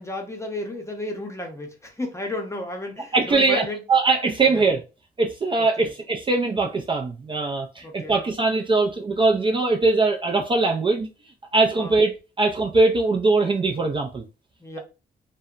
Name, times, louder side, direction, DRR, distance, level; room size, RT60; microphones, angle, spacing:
voice 1, 0.0-3.8 4.5-4.6 5.6-5.9 7.8-8.2 11.8-12.0 14.6-14.8, left 1 dB, 15° left, 0.7 m, -33 dB
voice 2, 3.1-4.8 5.2-11.1 11.5-14.2, right 3 dB, 25° right, 0.4 m, -21 dB
2.7 x 2.1 x 2.4 m
cardioid pair, 85°, 19 cm